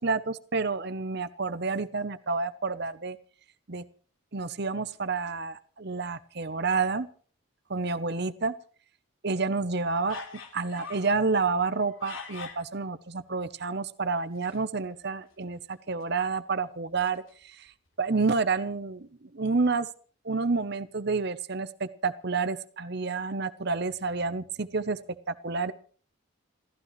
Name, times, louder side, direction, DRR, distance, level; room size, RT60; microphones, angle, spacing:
voice 1, 0.0-3.2 3.7-3.8 4.3-7.1 7.7-8.5 9.2-10.2 10.5-17.7 18.0-19.1 19.3-19.9 20.2-25.0 25.3-25.7, right 4 dB, 50° right, 13 dB, 0.8 m, -29 dB
sound 1, 10.1-11.2 11.7-12.7 14.3-14.7 15.0-15.1 15.3-15.4 16.0-16.2 16.9-17.9 18.3-18.4, left 4 dB, 75° left, 3.9 m, -43 dB
28.0 x 15.0 x 3.2 m, 0.43 s
head